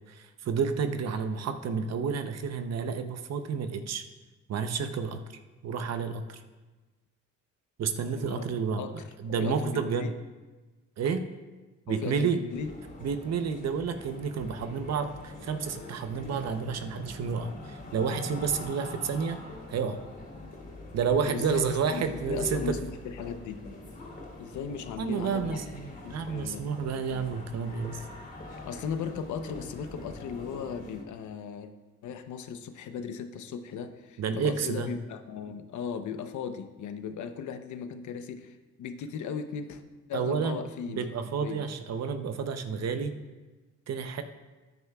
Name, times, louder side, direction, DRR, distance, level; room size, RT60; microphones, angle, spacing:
voice 1, 0.1-4.0 4.5-5.2 5.6-6.4 7.8-8.9 9.2-10.1 11.0-11.2 11.9-12.4 13.0-19.4 19.7-20.0 20.9-22.8 25.0-28.0 34.2-34.9 40.1-40.6 40.9-43.2 43.9-44.2, right 6 dB, 60° right, 8 dB, 0.8 m, -30 dB
voice 2, 9.3-10.1 11.9-12.7 21.2-23.6 24.4-25.6 26.0-26.6 28.6-31.7 32.0-39.8 40.1-41.1 41.4-41.6, left 6 dB, 75° left, 8 dB, 0.9 m, -37 dB
sound 1, 12.5-31.0, left 2 dB, 30° left, 3.2 m, -43 dB
13.5 x 9.7 x 2.4 m, 1.2 s
cardioid pair, 90°, 30 cm